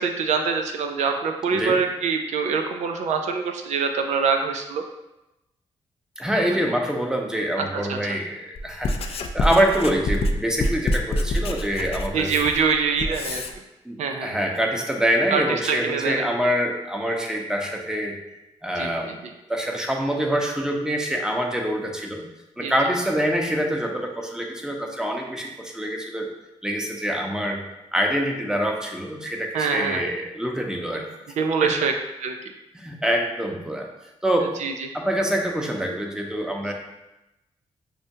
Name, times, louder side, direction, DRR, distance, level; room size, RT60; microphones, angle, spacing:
voice 1, 0.0-4.8 6.5-6.7 7.6-8.2 12.1-13.4 14.0-14.3 15.3-16.3 18.8-19.3 22.6-22.7 29.5-30.0 31.4-31.9 32.2-32.4 34.4-34.9, right 5 dB, 75° right, 5 dB, 0.4 m, -25 dB
voice 2, 6.2-12.3 13.8-18.2 18.6-19.2 19.5-22.2 22.6-26.3 26.6-27.6 27.9-31.1 31.6-31.7 32.7-33.9 34.2-34.6 34.9-36.7, equal, 5° right, 1 dB, 0.7 m, -25 dB
Writing, 8.6-13.5, left 1 dB, 55° left, 0.4 m, -26 dB
6.4 x 2.1 x 2.7 m, 0.96 s
cardioid pair, 60°, 12 cm